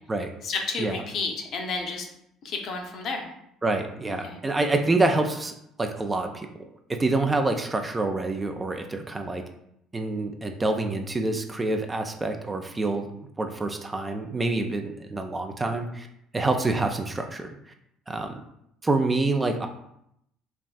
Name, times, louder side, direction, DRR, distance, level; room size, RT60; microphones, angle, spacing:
voice 1, 0.4-2.1 2.4-3.3 4.2-4.4, left 4 dB, 55° left, 2 dB, 0.6 m, -31 dB
voice 2, 3.6-6.5 6.9-9.4 9.9-13.1 13.4-16.1 16.3-17.6 18.1-18.4 18.8-19.7, right 2 dB, 20° right, 5 dB, 0.4 m, -27 dB
3.3 x 2.4 x 2.3 m, 0.76 s
hypercardioid pair, 55°, 0 cm